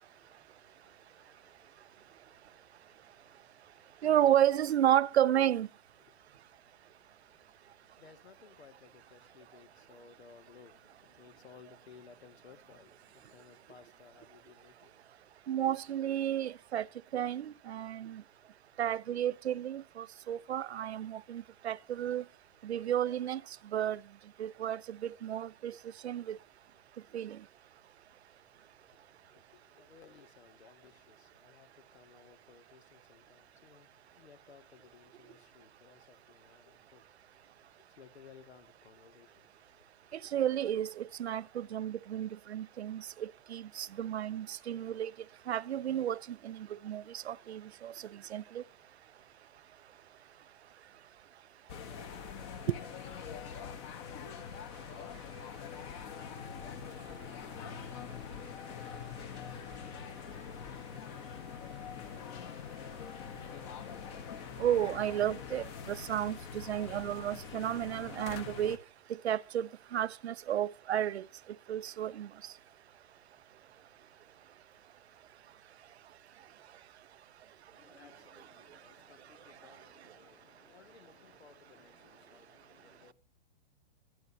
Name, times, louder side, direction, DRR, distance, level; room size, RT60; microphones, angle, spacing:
voice 1, 0.0-4.1 6.0-14.9 28.0-28.4 28.9-40.3 56.6-63.3 77.7-83.1, left 6 dB, 85° left, 2.2 m, -60 dB
voice 2, 4.0-5.7 15.5-16.9 17.1-18.2 18.8-22.2 22.6-23.4 23.7-24.0 24.4-25.8 26.0-26.4 27.1-27.4 40.3-45.1 45.5-46.2 46.4-47.9 48.3-48.6 52.7-52.8 64.6-68.8 69.2-71.2 71.7-72.3, right 11 dB, 85° right, 0.7 m, -32 dB
sound 1, 51.7-68.8, left 7 dB, 25° left, 1.2 m, -44 dB
24.0 x 9.5 x 2.8 m
hypercardioid pair, 165°, 32 cm